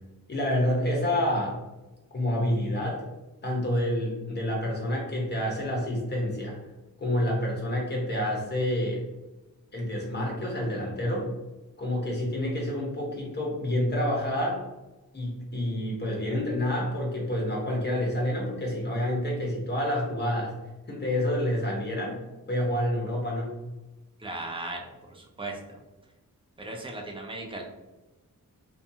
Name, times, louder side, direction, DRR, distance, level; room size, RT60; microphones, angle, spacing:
voice 1, 0.3-1.6 2.1-3.0 3.4-6.6 7.0-9.1 9.7-11.3 11.8-14.6 15.1-20.5 20.9-22.2 22.5-23.5, left 1 dB, 30° left, -2 dB, 0.8 m, -28 dB
voice 2, 24.2-25.6 26.6-27.6, right 2 dB, 15° right, 0 dB, 0.4 m, -37 dB
2.5 x 2.3 x 2.7 m, 1.1 s
wide cardioid pair, 125°, 34 cm